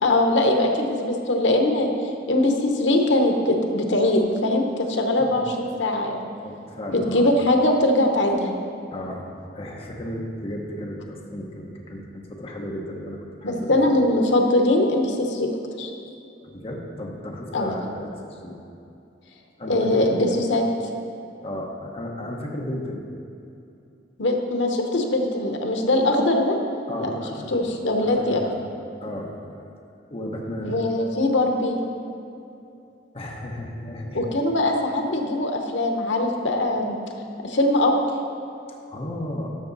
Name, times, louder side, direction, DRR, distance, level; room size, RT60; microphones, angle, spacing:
voice 1, 0.0-1.9 2.3-6.3 6.9-8.5 13.4-15.5 15.8-15.9 17.5-17.7 19.6-20.6 24.2-26.6 27.0-27.2 27.5-28.5 30.6-31.8 34.1-37.0 37.4-37.9, left 1 dB, 85° left, 3 dB, 1.0 m, -21 dB
voice 2, 5.2-5.5 6.4-7.3 8.9-14.0 16.4-18.6 19.6-20.4 21.4-23.0 26.9-27.5 28.0-28.6 29.0-29.4 30.1-30.8 33.1-34.3 38.9-39.5, left 1 dB, 30° left, -1 dB, 0.9 m, -34 dB
13.0 x 6.0 x 4.0 m, 2.6 s
head